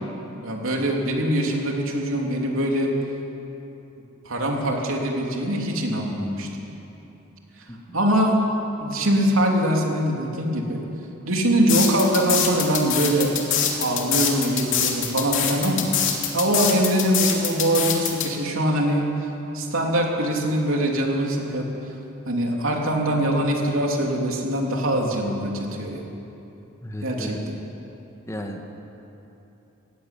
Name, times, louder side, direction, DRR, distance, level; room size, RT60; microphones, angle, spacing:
voice 1, 0.4-2.9 4.2-6.5 7.9-8.4 8.8-10.8 11.3-13.3 13.8-15.8 16.3-19.1 19.5-21.7 22.3-26.0 27.0-27.6, right 1 dB, 75° right, 0 dB, 3.2 m, -23 dB
sound 1, 11.7-18.3, left 9 dB, 65° left, 2.9 m, -24 dB
voice 2, 26.8-27.4 28.3-28.6, left 1 dB, 15° left, 3 dB, 1.6 m, -33 dB
17.5 x 16.5 x 9.9 m, 2.9 s
head